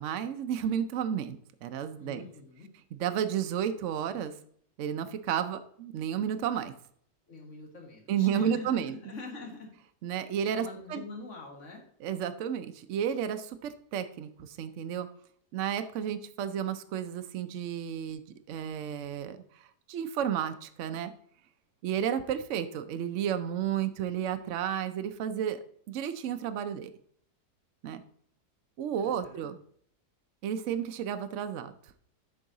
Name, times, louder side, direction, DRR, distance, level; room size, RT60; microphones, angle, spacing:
voice 1, 0.0-2.2 2.9-4.3 4.8-6.7 8.1-9.0 10.0-11.0 12.0-15.1 15.5-18.2 18.5-21.1 21.8-25.6 25.9-26.9 27.8-28.0 28.8-29.6 30.4-31.7, right 9 dB, 65° right, 9 dB, 0.8 m, -32 dB
voice 2, 2.0-2.7 7.3-9.7 10.6-11.8 29.0-29.5, left 3 dB, 50° left, 2 dB, 1.9 m, -44 dB
8.4 x 5.5 x 3.9 m, 0.64 s
omnidirectional pair, 1.7 m